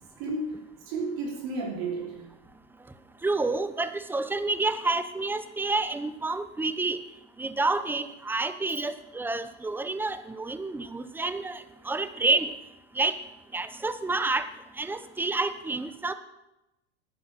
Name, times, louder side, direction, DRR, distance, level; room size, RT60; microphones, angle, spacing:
voice 1, 0.2-2.2, right 3 dB, 60° right, -2 dB, 3.6 m, -33 dB
voice 2, 3.2-7.0 7.4-12.5 13.0-13.1 13.5-14.5 14.8-16.1, right 3 dB, 5° right, 11 dB, 0.7 m, -29 dB
10.5 x 10.5 x 6.7 m, 0.94 s
hypercardioid pair, 115°, 33 cm